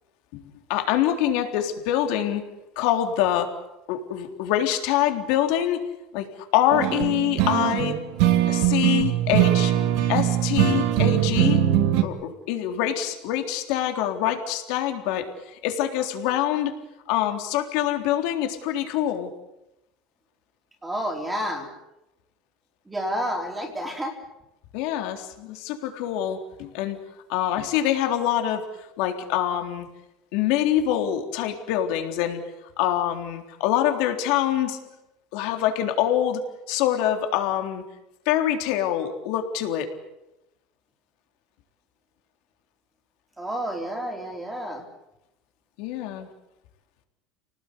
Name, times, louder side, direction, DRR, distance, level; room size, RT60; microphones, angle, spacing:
voice 1, 0.7-2.4 2.8-3.5 3.9-5.8 6.1-6.3 6.5-8.0 8.5-9.7 10.1-11.6 12.0-16.7 17.1-19.3 24.7-27.0 27.3-28.6 29.0-29.9 30.3-32.4 32.8-34.8 35.3-36.4 36.7-37.8 38.3-39.9 45.8-46.3, left 11 dB, 60° left, 5 dB, 3.6 m, -25 dB
sound 1, 6.7-12.0, right 12 dB, 60° right, 2.3 m, -21 dB
voice 2, 20.8-21.7 22.9-24.2 43.4-44.8, equal, 10° right, 3 dB, 3.8 m, -30 dB
30.0 x 19.0 x 8.5 m, 0.91 s
cardioid pair, 170°, 0 cm